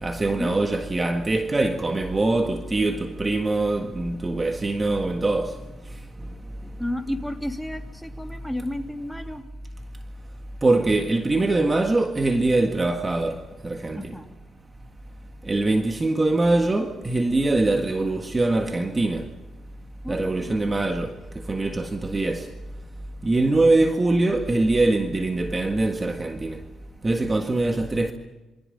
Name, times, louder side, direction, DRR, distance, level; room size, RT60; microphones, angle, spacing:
voice 1, 0.0-5.5 10.6-14.1 15.5-19.2 20.1-21.1 21.5-22.5 23.2-26.6 27.0-28.1, right 2 dB, 25° right, 1.7 m, -23 dB
voice 2, 6.8-9.4 14.0-14.3 20.0-20.6, left 1 dB, ahead, 3.0 m, -32 dB
27.0 x 25.5 x 5.4 m
cardioid pair, 90°, 0 cm